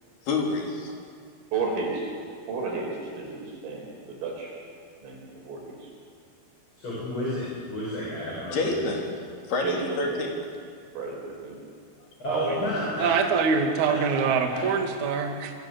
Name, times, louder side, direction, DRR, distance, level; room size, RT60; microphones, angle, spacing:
voice 1, 0.2-1.0 8.5-9.1 9.5-10.4, left 3 dB, 55° left, 0 dB, 5.2 m, -28 dB
voice 2, 1.5-2.1 2.5-4.5 5.0-5.9 9.6-10.0 11.0-11.6 12.3-12.8, right 3 dB, 80° right, 0 dB, 7.4 m, -32 dB
voice 3, 6.8-8.9 12.2-13.1 14.1-14.7, equal, 25° left, -6 dB, 7.1 m, -32 dB
voice 4, 13.0-15.5, right 5 dB, 50° right, 3 dB, 2.9 m, -24 dB
26.0 x 24.0 x 8.0 m, 2.2 s
omnidirectional pair, 5.7 m